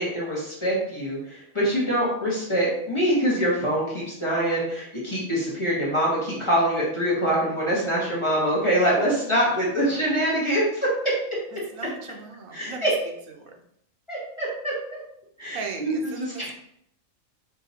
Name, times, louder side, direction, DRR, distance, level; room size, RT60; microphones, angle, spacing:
voice 1, 0.0-10.9 12.5-12.9 14.1-14.7 15.4-16.5, equal, 25° left, -6 dB, 1.1 m, -24 dB
voice 2, 9.8-10.1 11.7-12.9 15.5-16.5, right 4 dB, 85° right, 2 dB, 1.1 m, -38 dB
5.0 x 2.8 x 2.7 m, 0.72 s
omnidirectional pair, 1.4 m